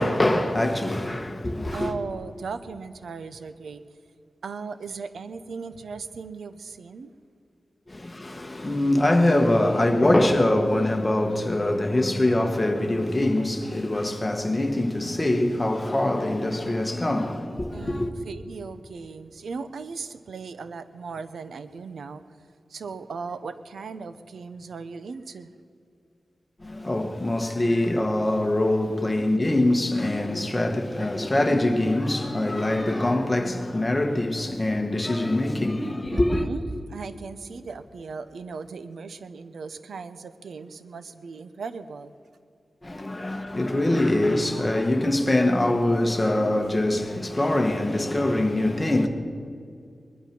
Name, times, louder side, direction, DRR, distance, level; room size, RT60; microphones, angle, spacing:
voice 1, 0.0-1.9 7.9-18.1 26.6-36.5 42.8-49.1, left 1 dB, 15° left, 1.4 m, -23 dB
voice 2, 1.7-3.8 4.4-7.1 17.7-22.2 22.7-25.5 36.1-42.1, right 5 dB, 90° right, 0.7 m, -37 dB
21.0 x 11.5 x 6.0 m
wide cardioid pair, 145°, 0 cm